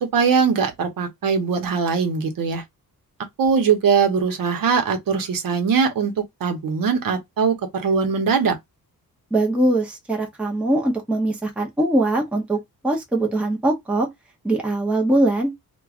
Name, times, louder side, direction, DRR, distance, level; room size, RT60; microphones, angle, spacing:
voice 1, 0.0-2.6 3.4-6.1 6.4-8.6, right 6 dB, 60° right, 0.9 m, -21 dB
voice 2, 9.3-12.6 12.8-14.1 14.4-15.5, right 1 dB, 5° right, 0.6 m, -21 dB
3.0 x 2.3 x 2.3 m
wide cardioid pair, 175°, 37 cm